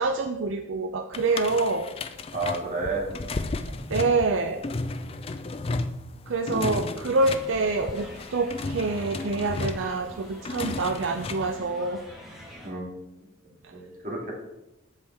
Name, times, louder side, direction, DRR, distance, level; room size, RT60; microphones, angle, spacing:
voice 1, 0.0-1.9 3.9-4.7 6.3-12.0, right 3 dB, 65° right, 6 dB, 0.4 m, -26 dB
sound 1, 1.1-11.6, left 3 dB, 30° left, 0.3 m, -34 dB
voice 2, 2.3-3.1 6.5-6.8 12.6-12.9 13.7-14.3, right 2 dB, 40° right, -3 dB, 2.2 m, -30 dB
sound 2, 7.2-12.7, equal, ahead, 1.5 m, -45 dB
8.1 x 6.9 x 3.5 m, 0.94 s
head